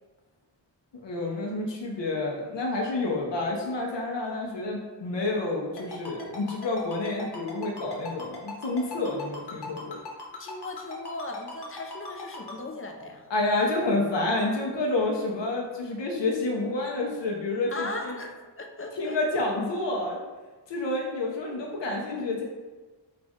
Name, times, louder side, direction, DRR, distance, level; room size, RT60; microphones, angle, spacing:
voice 1, 1.0-10.0 13.3-18.2 18.9-20.2 20.7-22.4, left 2 dB, 90° left, -1 dB, 0.7 m, -29 dB
Ringtone, 5.8-12.5, left 4 dB, 65° left, 1.1 m, -39 dB
voice 2, 10.4-13.3 17.7-19.2, left 2 dB, 30° left, 3 dB, 0.5 m, -37 dB
5.2 x 2.5 x 3.5 m, 1.3 s
wide cardioid pair, 95°, 42 cm